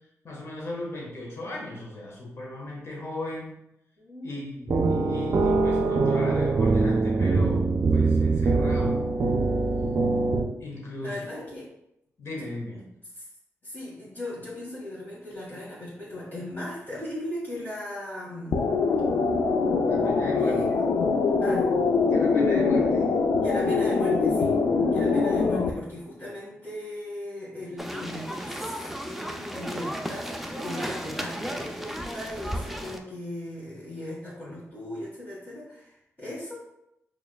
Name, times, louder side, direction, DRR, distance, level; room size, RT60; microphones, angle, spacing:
voice 1, 0.2-3.5 4.2-7.6 7.9-9.0 10.6-11.4 12.2-12.8 19.9-20.6 22.1-23.1, left 1 dB, 50° left, -3 dB, 1.3 m, -36 dB
voice 2, 4.0-4.8 11.0-11.6 12.3-12.5 12.7-12.8 13.1-13.3 13.6-18.7 20.4-20.8 21.4-21.7 23.4-24.6 24.9-36.5, left 1 dB, 35° left, -9 dB, 1.5 m, -38 dB
sound 1, 4.7-10.4, right 3 dB, 60° right, 0.5 m, -23 dB
sound 2, 18.5-25.7, left 4 dB, 75° left, 0.4 m, -23 dB
sound 3, 27.8-33.0, equal, 5° right, 0.4 m, -34 dB
4.7 x 3.2 x 2.3 m, 0.82 s
cardioid pair, 70°, 6 cm